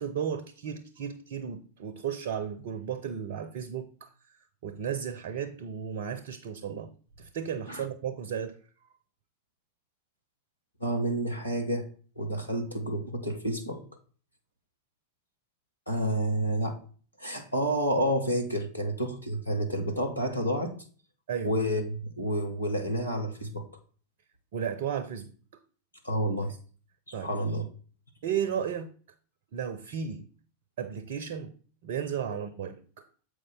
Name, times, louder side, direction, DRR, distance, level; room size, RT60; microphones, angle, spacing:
voice 1, 0.0-4.1 4.6-6.9 7.2-8.6 21.3-21.5 24.5-25.3 27.1-27.3 28.2-28.9 29.5-30.3 30.8-31.5 31.8-33.1, right 8 dB, 55° right, 12 dB, 0.6 m, -34 dB
voice 2, 10.8-11.9 12.2-13.8 15.9-16.8 17.2-20.7 21.4-23.6 26.0-26.5 27.1-27.7 32.3-32.4, equal, 85° left, 4 dB, 1.2 m, -29 dB
7.6 x 4.9 x 3.8 m, 0.42 s
figure-of-eight pair, 90°, 0 cm